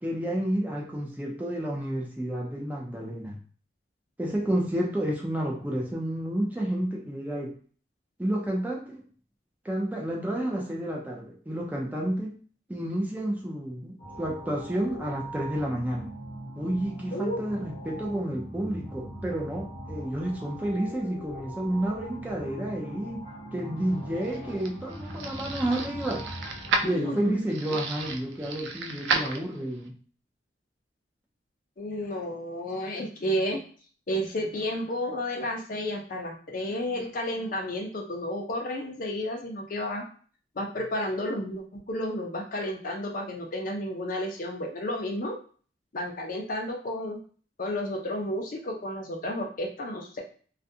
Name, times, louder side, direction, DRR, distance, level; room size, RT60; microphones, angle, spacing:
voice 1, 0.0-3.4 4.2-7.5 8.2-9.0 9.6-12.4 12.7-16.1 16.6-23.2 23.5-26.3 26.8-29.9, right 1 dB, 10° right, -1 dB, 0.4 m, -30 dB
sound 1, 14.0-26.8, equal, 30° left, 0.9 m, -41 dB
voice 2, 17.1-17.4 26.8-27.4 27.7-27.8 31.8-33.6 34.1-40.0 40.6-45.3 45.9-47.2 47.6-50.2, left 1 dB, 45° left, 1 dB, 0.5 m, -32 dB
sound 2, 23.9-29.9, right 4 dB, 70° right, 0.4 m, -33 dB
2.4 x 2.2 x 2.6 m, 0.43 s
head